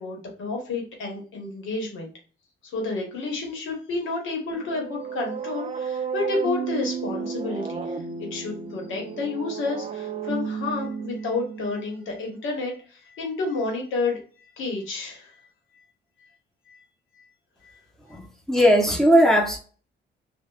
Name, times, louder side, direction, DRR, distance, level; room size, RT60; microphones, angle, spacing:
voice 1, 0.0-2.1 2.7-14.2 14.6-15.3 16.7-16.8 17.6-17.7, left 3 dB, 80° left, 1.2 m, -30 dB
sound 1, 4.5-12.3, right 6 dB, 30° right, 0.4 m, -33 dB
voice 2, 18.1-19.6, equal, ahead, 0.9 m, -18 dB
3.2 x 2.5 x 2.4 m
cardioid pair, 90°, 20 cm